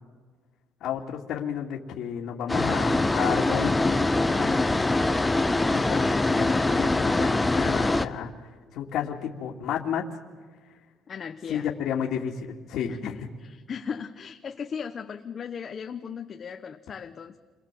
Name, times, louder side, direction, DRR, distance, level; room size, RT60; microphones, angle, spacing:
voice 1, 0.8-10.0 11.5-13.3, left 8 dB, 65° left, -4 dB, 2.6 m, -32 dB
sound 1, 2.5-8.1, left 2 dB, 10° left, 1.0 m, -23 dB
voice 2, 11.1-11.7 12.9-17.4, left 6 dB, 35° left, 4 dB, 1.1 m, -37 dB
29.0 x 23.5 x 7.7 m, 1.5 s
cardioid pair, 140°, 0 cm